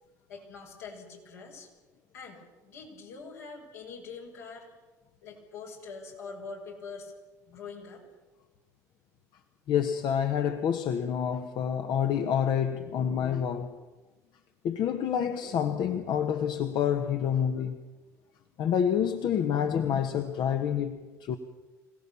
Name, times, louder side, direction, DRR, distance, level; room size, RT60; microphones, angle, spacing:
voice 1, 0.3-1.7 2.1-4.7 5.2-7.1 7.5-8.0, left 4 dB, 80° left, 6.2 m, -44 dB
voice 2, 9.7-13.7 14.6-17.8 18.6-21.4, left 8 dB, 55° left, 1.4 m, -28 dB
26.0 x 17.5 x 7.1 m
hypercardioid pair, 65°, 9 cm